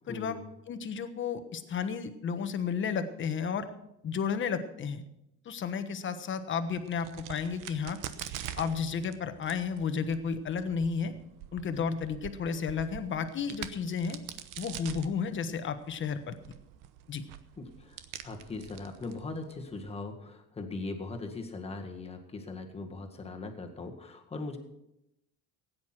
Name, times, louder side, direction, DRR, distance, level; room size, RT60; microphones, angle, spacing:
voice 1, 0.0-0.5 17.6-24.6, left 3 dB, 20° left, 3 dB, 1.9 m, -40 dB
voice 2, 0.7-3.7 4.0-5.0 5.4-8.0 8.6-11.1 11.5-14.2 14.6-16.4 17.1-17.2, left 6 dB, 35° left, 9 dB, 1.3 m, -32 dB
Crack, 6.7-19.9, right 11 dB, 75° right, 1.1 m, -45 dB
16.0 x 9.6 x 6.0 m, 0.84 s
cardioid pair, 135°, 33 cm